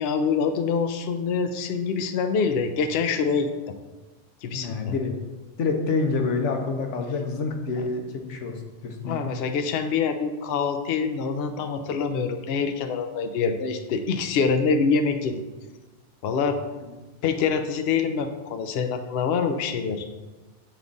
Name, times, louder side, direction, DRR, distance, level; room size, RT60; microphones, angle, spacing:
voice 1, 0.0-3.5 4.4-4.9 9.0-15.4 16.2-16.6 17.2-20.1, left 5 dB, 65° left, 7 dB, 0.7 m, -25 dB
voice 2, 4.5-5.1 5.6-9.2, left 4 dB, 85° left, 3 dB, 1.1 m, -27 dB
7.2 x 3.6 x 3.9 m, 1.2 s
omnidirectional pair, 1.2 m